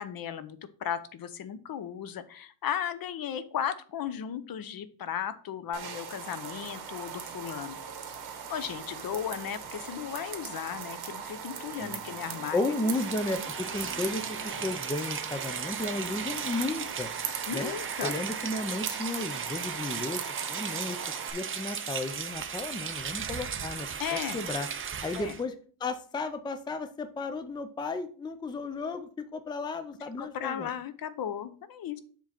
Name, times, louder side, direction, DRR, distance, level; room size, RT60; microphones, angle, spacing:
voice 1, 0.0-7.8 8.5-12.6 12.8-13.0 17.5-18.1 24.0-24.4 25.1-25.3 30.2-32.0, left 9 dB, 60° left, 12 dB, 0.8 m, -35 dB
sound 1, 5.7-21.3, right 7 dB, 70° right, 1.4 m, -39 dB
voice 2, 11.8-12.2 12.5-17.1 17.5-17.7 18.0-20.2 20.5-21.0 21.3-24.7 25.0-25.5 25.8-30.7, left 2 dB, 10° left, 10 dB, 0.4 m, -34 dB
Motorcycle, 12.0-18.4, equal, 30° left, 1.9 m, -50 dB
Rain, 12.8-25.4, right 7 dB, 30° right, 0.6 m, -36 dB
7.2 x 3.7 x 5.8 m, 0.43 s
wide cardioid pair, 170°, 39 cm